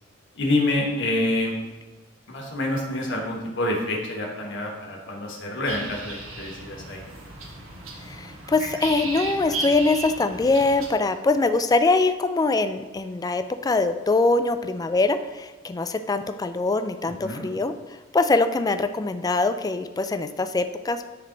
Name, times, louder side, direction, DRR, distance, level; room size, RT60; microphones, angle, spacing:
voice 1, 0.3-1.6 2.3-7.1 17.0-17.5, left 1 dB, 60° left, -1 dB, 1.3 m, -27 dB
sound 1, 5.6-10.9, right 2 dB, 80° right, 1.2 m, -35 dB
voice 2, 8.1-21.1, left 3 dB, 20° left, 10 dB, 0.3 m, -23 dB
9.6 x 3.4 x 3.8 m, 1.3 s
head